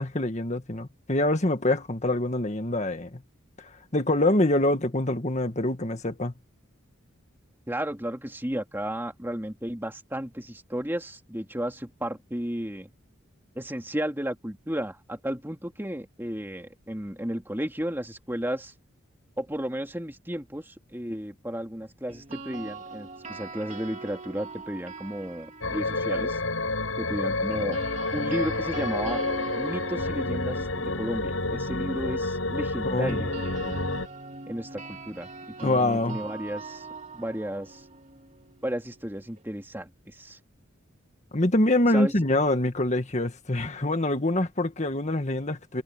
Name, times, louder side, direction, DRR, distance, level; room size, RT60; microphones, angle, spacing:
voice 1, 0.0-3.2 3.9-6.3 32.8-33.2 35.6-36.2 41.3-45.8, left 1 dB, 35° left, 1.7 m, -25 dB
voice 2, 7.7-12.9 13.5-18.7 19.4-26.4 27.0-27.8 28.1-29.2 29.6-33.9 34.5-36.9 37.1-37.8 38.6-40.4 41.9-42.1, equal, 10° right, 2.6 m, -33 dB
sound 1, 22.1-26.3 27.5-39.4, right 3 dB, 35° right, 2.8 m, -41 dB
sound 2, 25.6-34.1, left 2 dB, 85° left, 7.2 m, -29 dB
head